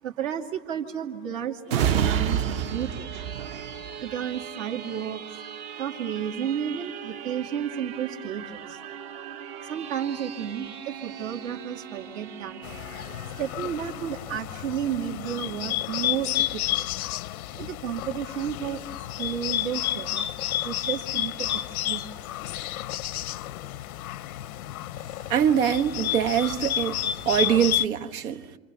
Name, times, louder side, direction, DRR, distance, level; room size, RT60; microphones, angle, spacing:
voice 1, 0.0-3.1 4.0-5.2 5.8-8.8 9.6-12.6 13.3-16.9 17.5-20.3 20.6-22.2, right 9 dB, 65° right, 2.6 m, -32 dB
sound 1, 1.7-15.0 15.4-15.6, right 9 dB, 40° right, 1.0 m, -33 dB
Bird, 12.6-27.8, left 13 dB, 90° left, 0.7 m, -31 dB
voice 2, 25.3-27.0 27.2-28.4, right 9 dB, 85° right, 1.7 m, -23 dB
28.0 x 26.5 x 6.9 m
supercardioid pair, 160°, 42 cm